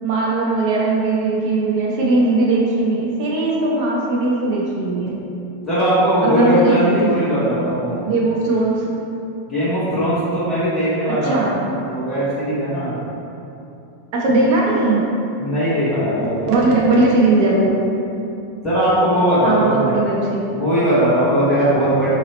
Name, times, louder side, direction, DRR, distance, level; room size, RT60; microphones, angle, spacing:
voice 1, 0.0-5.2 6.2-7.2 8.0-8.8 11.2-11.6 14.1-15.0 16.5-17.7 19.4-20.8, right 2 dB, 45° right, -4 dB, 0.8 m, -18 dB
voice 2, 5.6-8.0 9.5-13.0 15.4-16.5 18.6-19.9 20.5-22.1, right 1 dB, 10° left, -14 dB, 1.4 m, -19 dB
3.0 x 2.8 x 4.1 m, 2.8 s
supercardioid pair, 155°, 0 cm